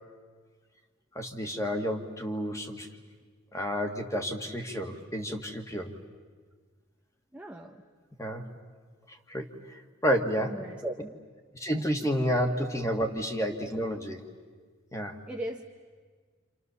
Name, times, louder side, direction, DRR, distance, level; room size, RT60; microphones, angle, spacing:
voice 1, 1.2-2.9 3.5-5.9 8.2-8.4 9.1-10.5 11.5-14.2 14.9-15.2, equal, 15° left, 4 dB, 1.9 m, -30 dB
voice 2, 7.3-7.8 10.4-11.1 15.3-15.7, right 1 dB, 5° right, 1 dB, 0.9 m, -37 dB
29.0 x 28.0 x 7.0 m, 1.6 s
head